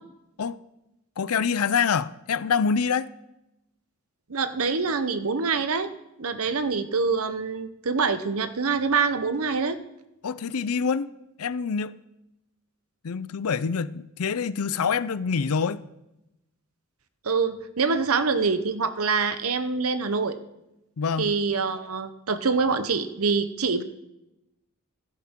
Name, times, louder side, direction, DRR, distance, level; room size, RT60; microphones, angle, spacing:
voice 1, 1.2-3.1 10.2-11.1 11.4-11.9 13.0-15.8 21.0-21.3, left 6 dB, 80° left, 0.5 m, -26 dB
voice 2, 4.3-5.9 6.2-9.8 17.2-20.4 21.2-23.8, right 4 dB, 75° right, 0.9 m, -25 dB
15.5 x 13.0 x 3.7 m
head